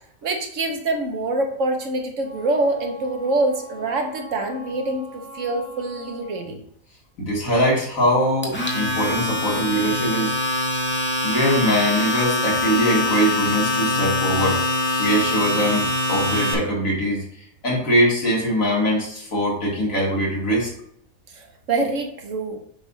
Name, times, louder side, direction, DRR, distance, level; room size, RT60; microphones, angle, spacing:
voice 1, 0.2-6.6 21.3-22.6, right 2 dB, 65° right, 3 dB, 1.4 m, -25 dB
Wind instrument woodwind instrument, 2.2-6.5, right 1 dB, 90° right, 2.4 m, -42 dB
voice 2, 7.2-10.3 11.2-14.6 15.0-20.7, equal, 70° left, -4 dB, 2.5 m, -22 dB
Domestic sounds home sounds, 8.4-16.5, left 2 dB, 10° left, 1.0 m, -23 dB
7.2 x 2.6 x 5.5 m, 0.69 s
omnidirectional pair, 1.5 m